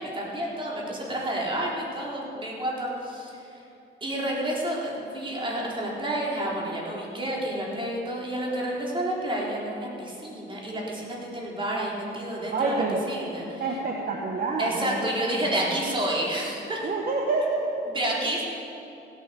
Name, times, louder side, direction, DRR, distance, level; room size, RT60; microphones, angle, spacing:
voice 1, 0.0-3.6 4.0-13.6 14.6-16.8 17.9-18.4, right 1 dB, 25° right, -4 dB, 3.9 m, -30 dB
voice 2, 12.5-13.0 13.6-15.0 15.4-15.8 16.8-17.7, right 3 dB, 50° right, 0 dB, 1.5 m, -28 dB
16.5 x 8.9 x 7.0 m, 2.8 s
cardioid pair, 90°, 20 cm